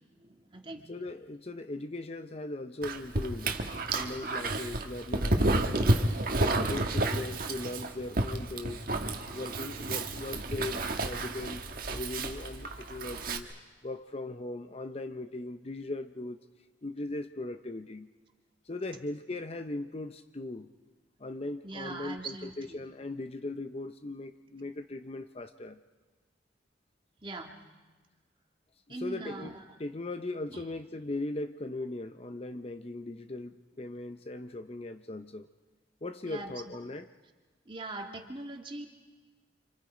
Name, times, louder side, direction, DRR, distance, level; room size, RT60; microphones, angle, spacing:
voice 1, 0.2-0.9 21.6-22.8 27.2-27.6 28.9-29.6 30.5-30.6 36.2-36.8 37.7-38.9, right 2 dB, 30° right, 3 dB, 2.0 m, -41 dB
voice 2, 0.9-3.5 3.9-6.1 6.5-8.9 9.3-13.5 13.8-16.4 16.8-18.1 18.7-20.7 21.2-25.8 28.9-29.5 29.8-35.5 36.0-37.1, left 2 dB, 35° left, 9 dB, 0.7 m, -39 dB
Dog, 2.8-13.4, right 2 dB, 50° right, 1.6 m, -31 dB
29.5 x 26.5 x 5.0 m, 1.3 s
head